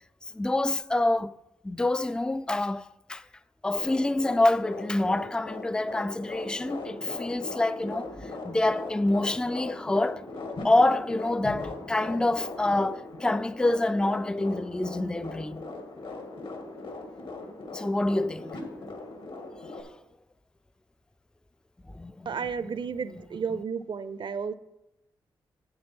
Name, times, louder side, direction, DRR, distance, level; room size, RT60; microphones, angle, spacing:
voice 1, 0.2-1.4 1.6-3.3 3.6-10.3 10.6-15.7 17.7-18.6 19.8-19.9 21.9-22.5 23.1-23.2 23.5-23.6, left 2 dB, 10° left, 0.4 m, -27 dB
sound 1, 3.7-19.8, left 2 dB, 65° left, 2.0 m, -39 dB
voice 2, 22.3-24.5, right 6 dB, 60° right, 0.6 m, -32 dB
8.6 x 7.6 x 4.4 m
cardioid pair, 50°, 9 cm